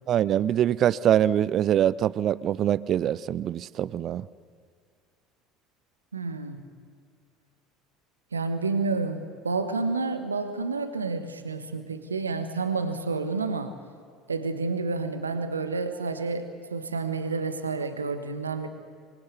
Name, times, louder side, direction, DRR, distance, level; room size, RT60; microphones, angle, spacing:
voice 1, 0.1-4.3, right 10 dB, 45° right, 0.5 m, -24 dB
voice 2, 6.1-6.6 8.3-13.7 14.3-18.7, right 4 dB, 80° right, 1.4 m, -29 dB
25.0 x 21.0 x 8.4 m
figure-of-eight pair, 65°, 0 cm